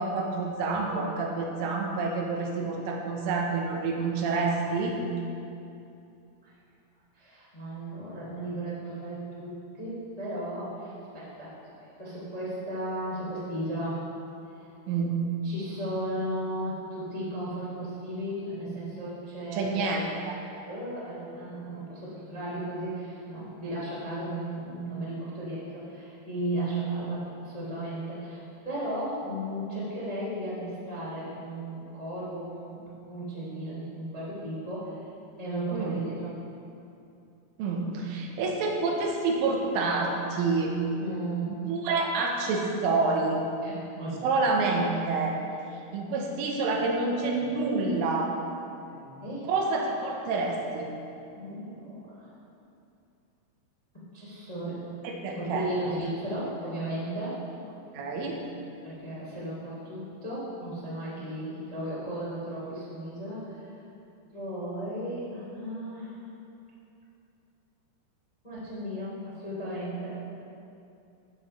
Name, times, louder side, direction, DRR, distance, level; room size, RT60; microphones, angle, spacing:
voice 1, 0.0-5.0 14.9-15.2 19.5-20.4 26.6-26.8 35.7-36.0 37.6-40.7 41.7-43.4 44.2-45.4 45.9-48.3 49.5-50.9 55.2-55.7 57.9-58.4, right 3 dB, 85° right, 0 dB, 3.6 m, -28 dB
voice 2, 7.1-11.5 11.8-14.0 14.5-14.7 15.4-19.7 20.7-28.4 28.6-35.0 35.4-36.3 41.0-41.5 43.6-44.2 47.4-47.5 47.7-47.9 48.9-49.5 51.3-52.3 54.1-54.8 55.3-57.4 58.8-63.7 64.3-66.2 68.4-70.2, right 1 dB, 15° left, -8 dB, 1.3 m, -35 dB
13.5 x 7.8 x 4.4 m, 2.7 s
omnidirectional pair, 5.6 m